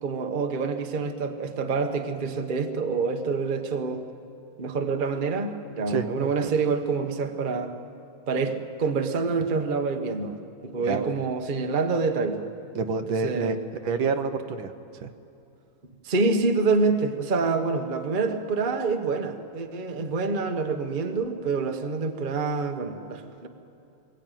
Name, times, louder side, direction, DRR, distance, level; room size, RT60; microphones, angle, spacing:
voice 1, 0.0-4.0 4.6-7.7 8.3-12.4 13.2-13.5 16.0-23.5, right 4 dB, 30° right, 5 dB, 1.1 m, -27 dB
voice 2, 5.9-6.5 10.8-11.1 12.7-13.6 13.8-15.1 20.0-20.1, right 5 dB, 75° right, 8 dB, 1.8 m, -28 dB
25.0 x 21.0 x 9.2 m, 2.7 s
omnidirectional pair, 2.3 m